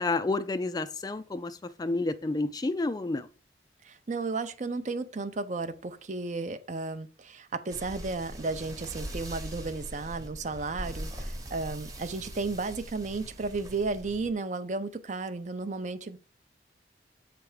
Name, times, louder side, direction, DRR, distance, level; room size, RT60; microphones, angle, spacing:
voice 1, 0.0-3.3, left 3 dB, 20° left, 0.3 m, -30 dB
voice 2, 3.8-16.2, right 3 dB, 40° right, 0.6 m, -33 dB
sound 1, 7.7-14.3, right 1 dB, 20° right, 1.0 m, -41 dB
7.9 x 3.4 x 4.8 m
head